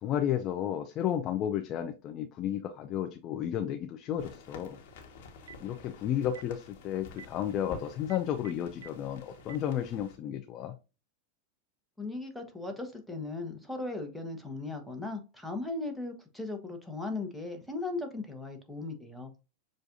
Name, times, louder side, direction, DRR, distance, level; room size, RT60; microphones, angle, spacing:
voice 1, 0.0-4.8 5.6-10.8, left 10 dB, 40° left, 7 dB, 0.5 m, -32 dB
sound 1, 4.2-10.2, left 4 dB, 65° left, 1.4 m, -50 dB
Telephone, 5.2-5.7 6.2-6.5 7.1-7.3 8.0-8.9 9.4-9.6, right 9 dB, 80° right, 0.3 m, -48 dB
voice 2, 12.0-19.3, left 3 dB, ahead, 3 dB, 1.2 m, -37 dB
6.9 x 2.5 x 2.6 m, 0.30 s
hypercardioid pair, 95°, 0 cm